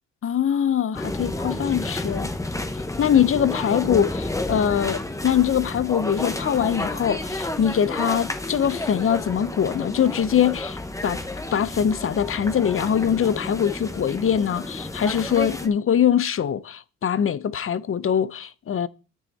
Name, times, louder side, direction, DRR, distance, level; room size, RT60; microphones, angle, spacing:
voice 1, 0.2-2.3 3.0-11.2 11.5-18.9, left 8 dB, 45° left, 0.8 m, -23 dB
sound 1, 0.9-15.7, left 2 dB, 10° left, 1.3 m, -31 dB
10.5 x 9.0 x 4.2 m
cardioid pair, 90°, 30 cm